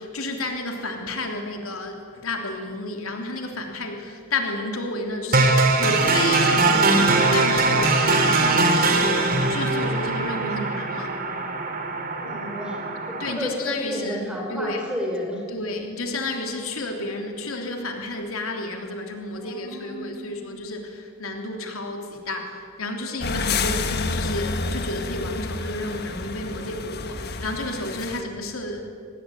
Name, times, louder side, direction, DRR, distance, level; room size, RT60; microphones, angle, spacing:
voice 1, 0.0-11.2 13.2-14.2 14.5-14.8 15.5-28.8, left 2 dB, 80° left, 3 dB, 3.3 m, -31 dB
sound 1, 5.3-13.3, right 3 dB, 45° right, 2.9 m, -21 dB
voice 2, 12.2-12.8 13.1-15.4 19.4-20.5, equal, 5° right, -1 dB, 5.8 m, -32 dB
sound 2, 23.2-28.2, left 4 dB, 50° left, 1.5 m, -29 dB
26.0 x 19.5 x 9.3 m, 2.2 s
head